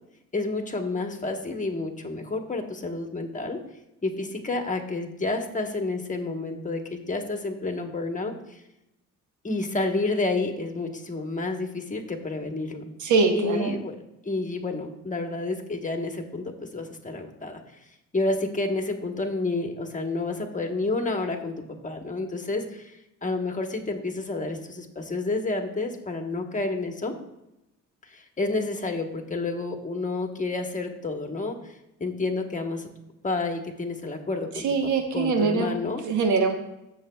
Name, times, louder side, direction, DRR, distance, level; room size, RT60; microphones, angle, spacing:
voice 1, 0.3-3.6 4.0-8.6 9.4-12.8 13.3-13.9 14.2-17.6 18.1-27.1 28.0-32.9 33.2-34.7 35.1-36.0, left 2 dB, 25° left, 4 dB, 1.2 m, -30 dB
voice 2, 13.0-13.8 34.5-35.8 36.0-36.5, right 4 dB, 75° right, 5 dB, 1.2 m, -23 dB
14.5 x 7.1 x 2.3 m, 0.89 s
cardioid pair, 90°, 30 cm